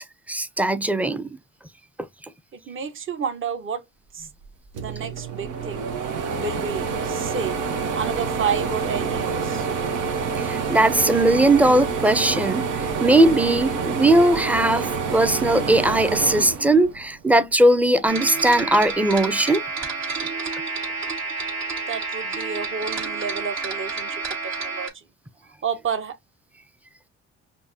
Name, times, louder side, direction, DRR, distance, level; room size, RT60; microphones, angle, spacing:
voice 1, 0.0-1.4 10.4-19.6, right 1 dB, 5° right, 0.5 m, -19 dB
voice 2, 2.5-3.8 4.1-4.3 4.7-5.9 6.4-7.6 7.9-9.7 21.9-24.9 25.6-26.2, right 6 dB, 40° right, 1.0 m, -30 dB
sound 1, 4.4-4.5 4.8-17.4 17.8-18.9, right 5 dB, 90° right, 1.0 m, -27 dB
sound 2, 18.1-24.9, right 4 dB, 65° right, 1.9 m, -29 dB
5.5 x 2.2 x 2.7 m
cardioid pair, 90°, 30 cm